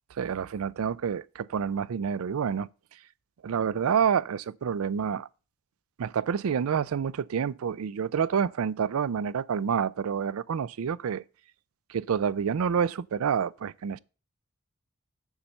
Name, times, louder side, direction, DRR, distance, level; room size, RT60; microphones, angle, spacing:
voice 1, 0.2-2.7 3.4-5.3 6.0-11.2 11.9-14.0, right 7 dB, 85° right, 0.4 m, -28 dB
7.2 x 5.6 x 6.5 m
head